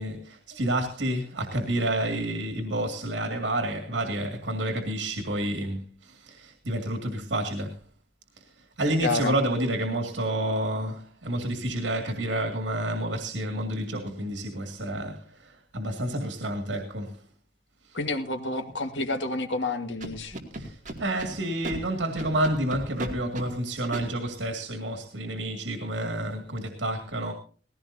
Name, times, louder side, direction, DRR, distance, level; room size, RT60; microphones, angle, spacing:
voice 1, 0.0-7.8 8.4-17.2 17.8-18.0 20.5-27.3, right 1 dB, 90° right, 2.2 m, -29 dB
voice 2, 9.0-9.3 17.9-20.4, left 2 dB, 80° left, 1.8 m, -29 dB
Scratching (performance technique), 20.0-21.3 21.6-21.8 22.2-23.5 23.9-24.0, right 2 dB, 45° right, 2.5 m, -35 dB
19.0 x 16.5 x 2.7 m
head